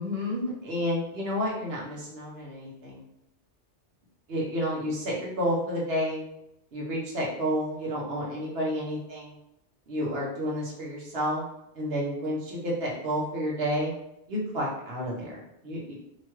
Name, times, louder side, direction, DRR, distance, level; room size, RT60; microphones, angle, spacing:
voice 1, 0.0-3.0 4.3-6.2 6.7-9.3 9.9-11.4 11.7-13.9 14.3-16.0, equal, 60° right, -4 dB, 1.0 m, -30 dB
3.1 x 2.2 x 2.9 m, 0.83 s
omnidirectional pair, 1.2 m